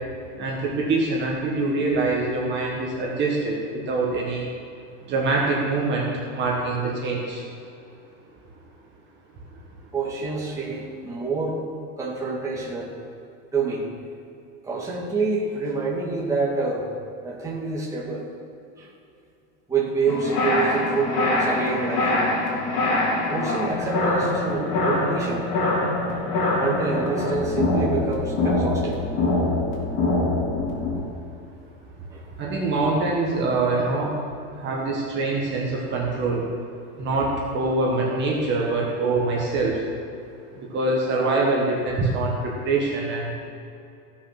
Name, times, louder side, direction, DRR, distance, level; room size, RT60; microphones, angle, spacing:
voice 1, 0.4-4.5 5.1-6.1 6.3-7.4 32.4-34.2 34.5-36.4 37.0-39.8 40.5-43.3, right 3 dB, 30° right, -3 dB, 1.6 m, -24 dB
voice 2, 9.9-11.6 12.0-12.9 13.5-13.9 14.6-16.9 17.2-18.2 18.8-18.9 19.7-22.3 23.3-25.5 26.6-29.0 32.1-32.2, right 4 dB, 10° right, -5 dB, 1.9 m, -27 dB
sound 1, 20.1-31.0, left 2 dB, 45° left, 3.3 m, -24 dB
15.5 x 6.4 x 6.0 m, 2.6 s
supercardioid pair, 165°, 38 cm